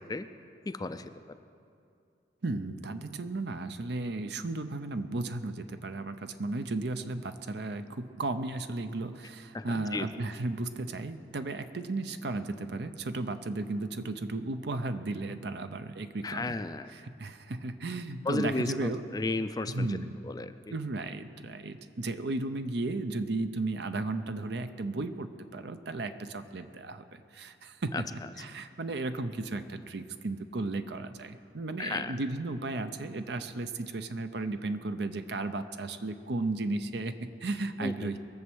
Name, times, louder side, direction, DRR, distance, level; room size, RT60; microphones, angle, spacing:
voice 1, 0.7-1.1 9.5-10.2 16.2-16.9 18.3-20.0 20.2-20.7 27.9-28.0 31.8-32.2 37.8-38.1, left 2 dB, 20° left, 11 dB, 0.4 m, -34 dB
voice 2, 2.4-16.6 16.9-19.1 19.7-20.2 20.7-38.2, right 2 dB, 65° right, 9 dB, 0.7 m, -35 dB
22.0 x 7.6 x 6.3 m, 2.5 s
head